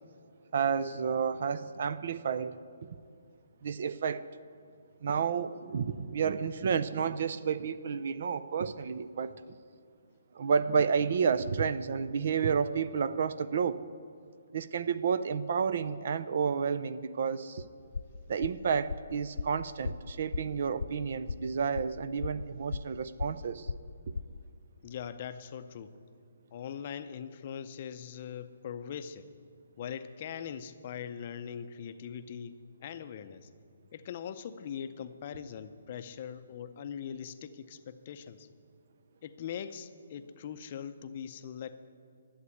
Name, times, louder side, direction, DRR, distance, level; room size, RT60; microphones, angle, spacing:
voice 1, 0.5-2.9 3.6-4.2 5.0-9.6 10.3-13.8 14.5-17.6 18.3-23.7, right 6 dB, 45° right, 14 dB, 0.5 m, -31 dB
sound 1, 17.9-24.5, left 4 dB, 75° left, 0.4 m, -38 dB
voice 2, 24.8-25.9 26.5-29.2 29.8-33.5 33.9-38.5 39.2-41.8, left 8 dB, 35° left, 10 dB, 0.6 m, -41 dB
11.5 x 8.1 x 9.5 m, 2.3 s
hypercardioid pair, 170°, 0 cm